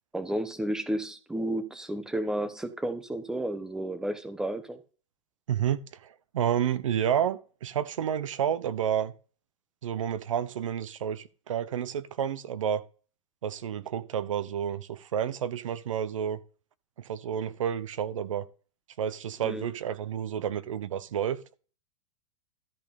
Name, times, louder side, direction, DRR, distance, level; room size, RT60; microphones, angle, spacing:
voice 1, 0.1-4.8 19.4-19.7, right 1 dB, 5° right, 1.0 m, -32 dB
voice 2, 5.5-9.1 9.8-12.8 13.4-16.4 17.0-18.5 19.0-21.4, right 9 dB, 80° right, 0.9 m, -30 dB
13.5 x 5.3 x 5.3 m
hypercardioid pair, 125°, 16 cm